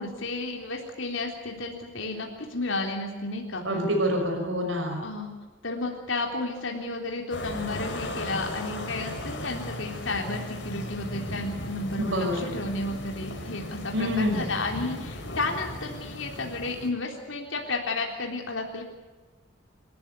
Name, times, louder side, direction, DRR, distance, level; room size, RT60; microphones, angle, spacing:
voice 1, 0.0-3.7 5.0-5.3 5.6-18.8, left 2 dB, 85° left, 1 dB, 3.6 m, -32 dB
voice 2, 3.6-5.0 12.0-12.5 13.9-14.5, equal, 80° right, 1 dB, 5.6 m, -26 dB
sound 1, 7.3-16.9, left 1 dB, 65° left, 4.5 m, -36 dB
28.0 x 14.0 x 9.4 m, 1.3 s
head